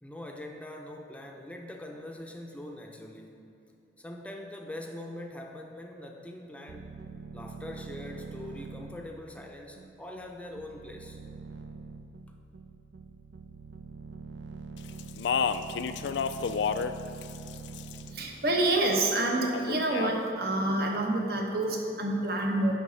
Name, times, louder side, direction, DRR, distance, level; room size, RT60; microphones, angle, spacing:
voice 1, 0.0-3.4 4.0-7.0 7.3-11.2, left 1 dB, 5° left, 2 dB, 0.5 m, -43 dB
sound 1, 6.7-19.2, right 4 dB, 80° right, 0.4 m, -44 dB
Speech, 15.0-16.9 17.2-18.1 19.5-20.2, left 6 dB, 80° left, 0.3 m, -30 dB
voice 2, 18.0-22.8, right 2 dB, 60° right, 1 dB, 1.0 m, -27 dB
10.0 x 4.0 x 5.6 m, 2.9 s
head